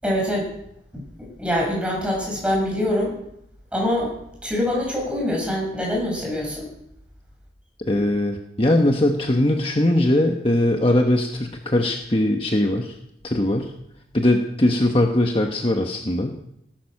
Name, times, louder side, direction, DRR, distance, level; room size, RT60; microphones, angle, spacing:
voice 1, 0.0-0.5 0.9-3.1 3.7-4.1 4.4-6.7, left 1 dB, 5° right, -2 dB, 6.9 m, -24 dB
voice 2, 7.9-12.9 13.2-13.7 14.1-16.4, left 1 dB, 30° left, 3 dB, 1.2 m, -20 dB
18.0 x 12.0 x 6.6 m, 0.78 s
head